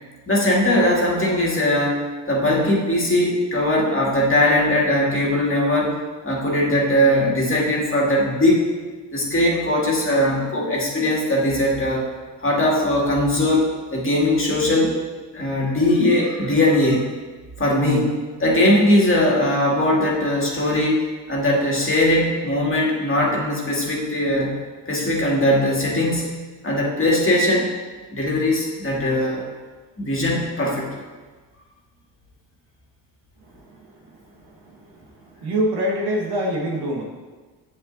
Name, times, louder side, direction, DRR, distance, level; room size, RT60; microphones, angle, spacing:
voice 1, 0.3-8.6 9.1-12.1 12.4-15.0 15.3-17.1 17.6-24.6 24.9-26.3 26.6-27.7 28.1-29.5 30.0-31.0, left 1 dB, 25° left, -3 dB, 2.1 m, -20 dB
voice 2, 33.5-37.0, equal, 50° right, -1 dB, 1.5 m, -27 dB
7.5 x 7.1 x 2.6 m, 1.3 s
hypercardioid pair, 55°, 49 cm